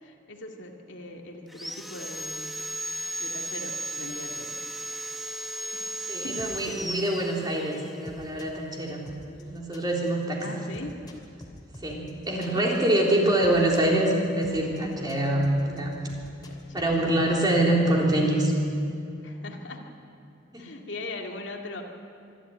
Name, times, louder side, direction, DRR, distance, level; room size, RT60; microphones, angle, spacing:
voice 1, 0.0-2.5 3.2-4.5 5.7-6.5 10.4-11.0 12.4-12.9 16.5-17.0 19.2-19.8 20.6-21.8, left 2 dB, 75° left, 1 dB, 2.2 m, -40 dB
Sawing, 1.5-8.0, right 1 dB, ahead, 0.9 m, -35 dB
voice 2, 6.1-9.1 9.4-10.5 11.8-15.9 16.7-18.5 20.5-20.7, right 1 dB, 20° right, -2 dB, 3.6 m, -25 dB
sound 1, 6.4-17.0, left 1 dB, 25° left, 2.8 m, -47 dB
25.0 x 12.5 x 9.2 m, 2.6 s
head